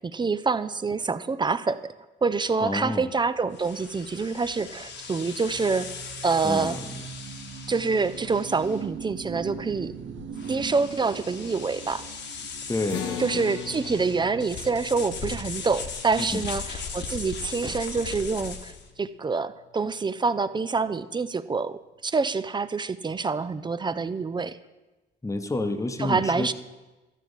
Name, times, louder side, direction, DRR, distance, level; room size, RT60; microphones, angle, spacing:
voice 1, 0.0-1.9 2.2-5.9 6.2-6.8 7.7-9.9 10.5-12.0 13.2-18.7 19.0-24.6 26.0-26.5, right 4 dB, 25° right, 14 dB, 0.4 m, -26 dB
sound 1, 2.3-16.5, right 7 dB, 70° right, 0.7 m, -43 dB
voice 2, 2.6-3.1 6.4-7.0 12.7-13.5 16.2-16.5 25.2-26.5, left 2 dB, 15° left, 9 dB, 0.9 m, -30 dB
sound 2, 3.5-18.9, left 5 dB, 65° left, 1.2 m, -39 dB
sound 3, 12.9-19.5, left 10 dB, 80° left, 0.9 m, -41 dB
12.5 x 4.6 x 8.1 m, 1.1 s
cardioid pair, 90°, 20 cm